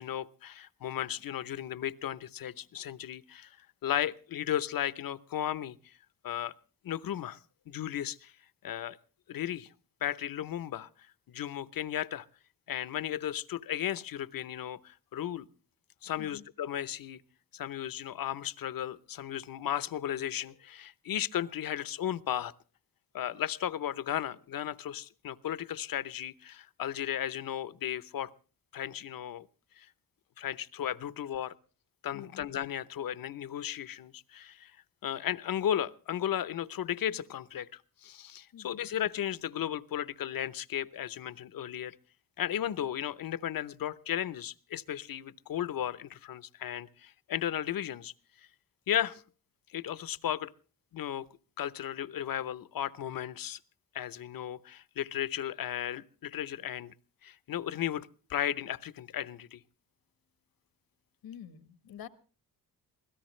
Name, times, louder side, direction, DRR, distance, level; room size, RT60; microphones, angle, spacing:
voice 1, 0.0-3.6 3.8-5.9 6.2-6.5 6.8-7.4 7.7-8.3 8.6-9.0 9.3-9.7 10.0-10.9 11.3-12.3 12.7-15.5 16.0-17.2 17.5-22.5 23.1-28.3 28.7-29.5 29.8-29.9 30.4-31.5 32.0-34.7 35.0-42.0 42.4-48.1 48.9-49.2 49.7-50.5 50.9-51.3 51.6-53.6 53.9-56.9 57.2-59.6, left 10 dB, 70° left, 17 dB, 0.9 m, -35 dB
voice 2, 32.1-32.5 38.5-38.8 61.2-62.1, left 9 dB, 90° left, 12 dB, 1.5 m, -47 dB
24.0 x 17.0 x 3.2 m, 0.37 s
cardioid pair, 90°, 35 cm